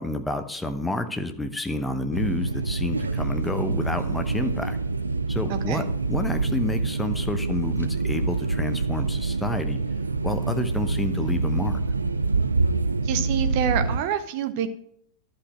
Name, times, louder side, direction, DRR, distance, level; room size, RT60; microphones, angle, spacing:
voice 1, 0.0-4.8 5.3-5.8 6.1-9.8 10.2-11.8, left 2 dB, 5° left, 7 dB, 0.9 m, -29 dB
sound 1, 2.1-14.0, right 3 dB, 80° right, 0.6 m, -26 dB
voice 2, 5.5-5.9 13.0-14.7, right 9 dB, 45° right, 9 dB, 0.9 m, -27 dB
11.5 x 5.2 x 6.1 m, 0.70 s
figure-of-eight pair, 90°, 0 cm